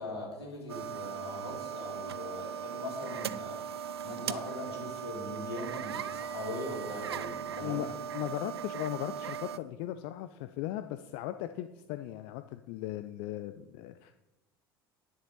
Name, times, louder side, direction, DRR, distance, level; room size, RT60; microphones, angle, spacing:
voice 1, 0.0-3.6 4.0-7.8, left 2 dB, 85° left, -3 dB, 3.6 m, -40 dB
sound 1, 0.7-9.6, right 8 dB, 80° right, 0.4 m, -38 dB
voice 2, 7.6-14.2, left 13 dB, 55° left, 10 dB, 0.5 m, -38 dB
10.5 x 10.0 x 4.1 m, 0.99 s
figure-of-eight pair, 70°, 13 cm